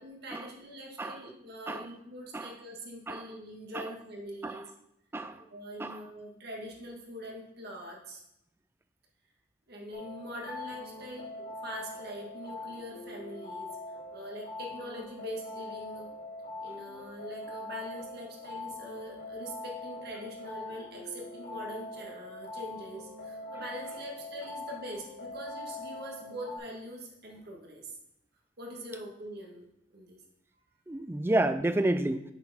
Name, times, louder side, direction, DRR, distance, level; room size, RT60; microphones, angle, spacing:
voice 1, 0.0-4.7 5.5-8.2 9.7-11.3 11.6-13.7 14.1-16.1 16.6-27.9 28.6-29.6 29.9-30.2, equal, 55° right, -1 dB, 1.8 m, -43 dB
sound 1, 9.9-26.6, left 2 dB, 70° left, 2.7 m, -43 dB
voice 2, 30.9-32.2, right 1 dB, 10° right, 9 dB, 0.4 m, -30 dB
8.0 x 4.8 x 5.5 m, 0.85 s
head